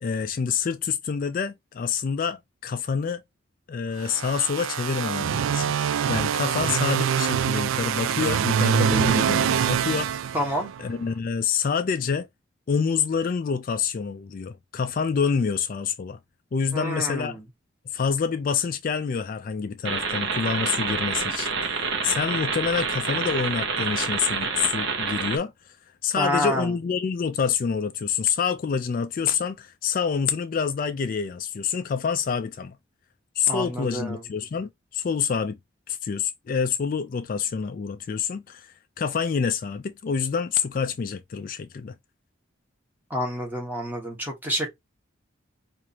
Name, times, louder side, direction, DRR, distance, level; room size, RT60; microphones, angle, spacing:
voice 1, 0.0-3.2 3.7-10.1 10.8-12.3 12.7-16.2 16.5-17.4 17.9-25.5 26.0-32.8 33.4-35.6 35.9-41.9, left 6 dB, 45° left, 0.3 m, -27 dB
sound 1, 4.0-10.9, right 8 dB, 75° right, 0.3 m, -24 dB
voice 2, 10.3-10.7 16.7-17.4 26.2-26.8 33.5-34.2 43.1-44.7, equal, 10° right, 1.2 m, -28 dB
sound 2, 19.8-25.4, right 5 dB, 60° right, 0.9 m, -27 dB
4.7 x 2.6 x 2.8 m
head